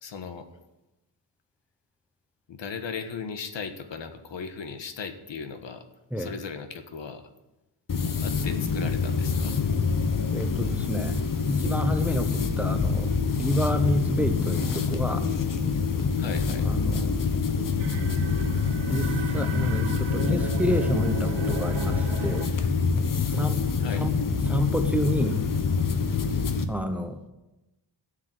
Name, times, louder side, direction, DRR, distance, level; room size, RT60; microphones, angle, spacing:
voice 1, 0.0-0.5 2.5-5.8 6.2-7.2 8.2-9.6 16.2-16.7 23.8-24.0, left 6 dB, 80° left, 8 dB, 1.5 m, -37 dB
sound 1, 7.9-26.7, left 5 dB, 45° left, 1.2 m, -26 dB
voice 2, 10.3-11.2 11.5-15.3 16.6-17.2 18.8-22.5 23.3-23.7 24.0-24.2 24.5-25.4 26.7-27.3, equal, 5° right, 7 dB, 0.9 m, -29 dB
sound 2, 17.8-22.7, right 7 dB, 90° right, 0.9 m, -35 dB
13.5 x 7.4 x 9.5 m, 1.0 s
wide cardioid pair, 150°, 44 cm